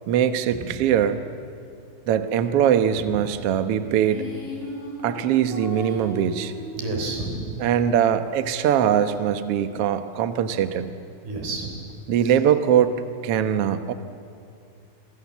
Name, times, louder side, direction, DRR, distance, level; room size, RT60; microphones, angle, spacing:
voice 1, 0.1-1.2 2.1-4.3 5.0-6.5 7.6-10.9 12.1-13.0 13.2-13.9, right 9 dB, 70° right, 9 dB, 1.4 m, -21 dB
sound 1, 4.0-7.2, equal, 35° left, 7.2 m, -36 dB
voice 2, 6.8-7.5 11.2-11.8, right 3 dB, 85° right, 2 dB, 5.7 m, -30 dB
28.5 x 23.5 x 7.3 m, 2.4 s
omnidirectional pair, 4.2 m